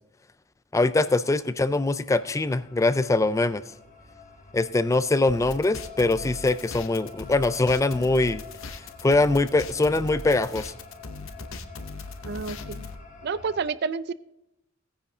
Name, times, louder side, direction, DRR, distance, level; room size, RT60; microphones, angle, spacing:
voice 1, 0.7-3.6 4.5-8.4 9.0-10.7, left 2 dB, 15° left, 14 dB, 0.3 m, -23 dB
sound 1, 2.1-13.6, left 4 dB, 40° left, 1.7 m, -47 dB
sound 2, 5.3-12.9, left 2 dB, 75° left, 0.8 m, -39 dB
voice 2, 12.2-12.9 13.2-14.1, right 5 dB, 55° right, 16 dB, 0.4 m, -30 dB
17.0 x 10.0 x 2.7 m, 0.85 s
head